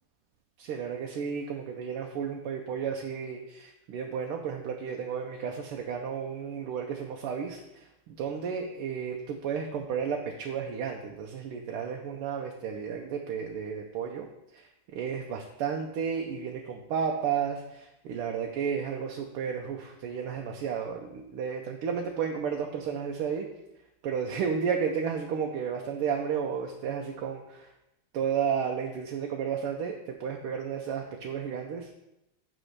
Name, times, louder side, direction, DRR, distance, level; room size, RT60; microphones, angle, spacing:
voice 1, 0.6-14.3 14.5-23.5 24.0-27.7 28.1-31.9, right 7 dB, 80° right, 2 dB, 1.6 m, -32 dB
7.8 x 4.3 x 6.4 m, 0.89 s
omnidirectional pair, 2.4 m